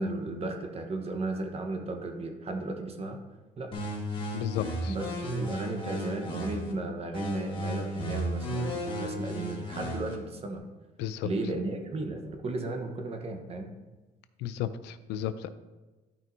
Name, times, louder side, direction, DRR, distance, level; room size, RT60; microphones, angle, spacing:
voice 1, 0.0-3.2 3.6-3.7 4.9-10.6 11.2-13.7, right 2 dB, 35° right, 4 dB, 1.1 m, -34 dB
sound 1, 3.7-6.7 7.1-10.1, equal, 30° left, 1.8 m, -34 dB
voice 2, 4.3-4.9 11.0-11.3 14.4-15.5, left 11 dB, 90° left, 13 dB, 0.5 m, -33 dB
12.0 x 5.4 x 2.7 m, 1.2 s
cardioid pair, 110°, 17 cm